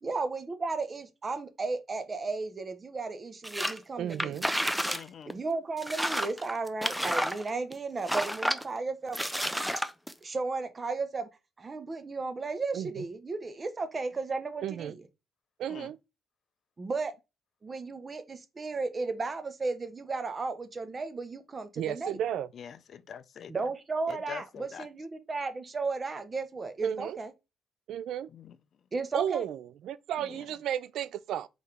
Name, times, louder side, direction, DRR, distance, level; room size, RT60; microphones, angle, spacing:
voice 1, 0.0-4.4 5.3-9.2 10.2-11.3 11.6-15.0 16.8-17.1 17.6-22.2 23.5-27.3 28.9-29.4, right 3 dB, 30° right, 0.9 m, -34 dB
sound 1, 3.4-3.8 4.1-5.0 5.3-5.4 5.8-7.7 8.1-8.6 9.1-10.1, equal, ahead, 0.5 m, -30 dB
voice 2, 4.0-4.5 12.7-13.0 14.6-14.9 15.6-16.0 21.8-22.5 26.8-27.2 27.9-28.3 29.1-31.5, right 10 dB, 80° right, 0.3 m, -33 dB
voice 3, 4.9-5.3 15.7-15.9 22.5-23.5 24.1-24.9 28.3-28.6 30.2-30.4, left 8 dB, 60° left, 0.5 m, -44 dB
4.1 x 3.8 x 3.4 m
cardioid pair, 90°, 0 cm